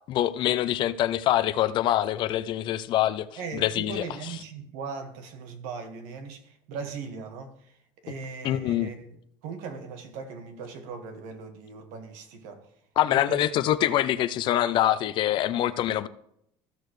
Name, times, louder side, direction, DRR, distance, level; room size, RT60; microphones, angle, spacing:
voice 1, 0.1-3.3 3.5-4.0 8.4-8.9 13.0-16.1, left 12 dB, 40° left, 0.4 m, -24 dB
voice 2, 3.4-7.8 8.0-12.7 13.1-13.5, right 5 dB, 75° right, 1.6 m, -39 dB
14.0 x 6.7 x 3.2 m
cardioid pair, 165°, 12 cm